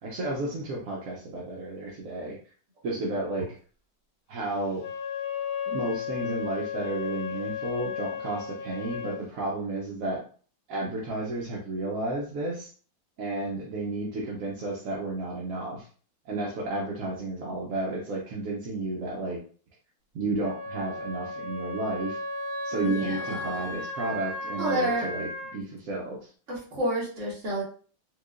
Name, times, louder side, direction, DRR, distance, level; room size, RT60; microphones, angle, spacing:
voice 1, 0.0-2.4 2.8-3.5 4.3-4.8 5.7-10.2 10.7-12.7 13.2-15.9 16.3-19.4 20.1-22.2 22.6-26.3, right 2 dB, 60° right, -3 dB, 0.9 m, -32 dB
Wind instrument woodwind instrument, 4.7-9.2, left 8 dB, 60° left, 1.2 m, -34 dB
Wind instrument woodwind instrument 2, 20.4-25.5, left 1 dB, 80° right, 2.4 m, -35 dB
voice 2, 22.8-23.8 24.6-25.1 26.5-27.6, right 1 dB, 45° right, -3 dB, 1.3 m, -30 dB
4.6 x 2.3 x 2.4 m, 0.42 s
omnidirectional pair, 2.0 m